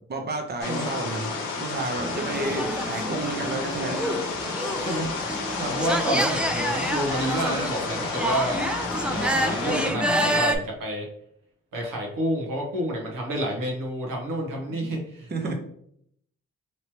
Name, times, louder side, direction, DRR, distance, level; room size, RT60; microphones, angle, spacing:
voice 1, 0.1-1.3 1.6-4.0 5.6-5.7 14.7-14.9 15.3-15.5, right 3 dB, 30° right, 3 dB, 0.7 m, -31 dB
sound 1, 0.6-9.9, left 4 dB, 80° left, 0.8 m, -31 dB
sound 2, 2.0-10.6, equal, 5° right, 0.4 m, -28 dB
voice 2, 4.8-5.1 5.7-8.6 9.1-11.1 11.7-15.5, right 1 dB, 80° right, 0 dB, 1.0 m, -29 dB
3.1 x 2.9 x 2.9 m, 0.69 s
supercardioid pair, 55°, 33 cm